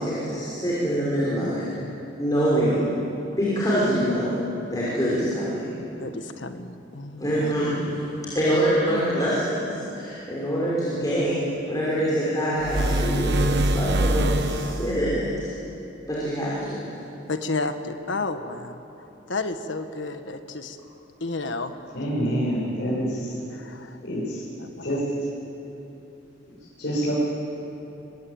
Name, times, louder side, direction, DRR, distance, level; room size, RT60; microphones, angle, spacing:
voice 1, 0.0-1.8 2.2-2.9 3.4-4.3 4.7-5.7 7.2-11.4 11.7-15.5 16.1-16.8, equal, 20° left, -7 dB, 6.0 m, -25 dB
voice 2, 1.4-2.1 6.0-7.5 8.9-9.4 14.7-14.8 17.3-20.8 21.2-21.7 23.5-24.2 24.6-25.0, left 3 dB, 80° left, 8 dB, 1.5 m, -32 dB
sound 1, 12.6-15.0, right 1 dB, 60° right, 1.3 m, -23 dB
voice 3, 21.9-23.3 24.0-24.4 24.8-25.0 26.8-27.1, equal, 60° left, -7 dB, 7.5 m, -26 dB
26.0 x 23.0 x 8.9 m, 2.9 s
head